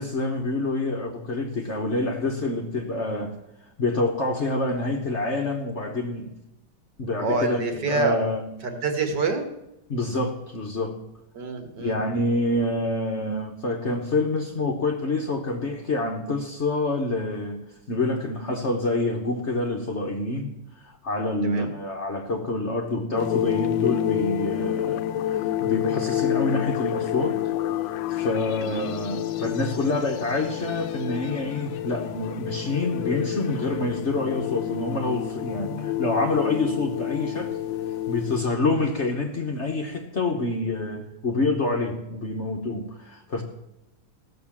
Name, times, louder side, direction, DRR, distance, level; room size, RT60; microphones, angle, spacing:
voice 1, 0.0-3.4 3.8-6.4 7.0-8.5 9.9-11.0 11.8-27.4 28.1-37.6 38.1-43.4, left 2 dB, 45° left, 2 dB, 1.1 m, -27 dB
voice 2, 7.2-8.2 8.6-9.5 11.4-12.0 21.4-21.7 28.6-28.9, right 3 dB, 60° right, 6 dB, 2.0 m, -26 dB
sound 1, 23.2-38.5, left 11 dB, 80° left, 1.4 m, -29 dB
15.0 x 6.6 x 7.3 m, 0.87 s
omnidirectional pair, 2.1 m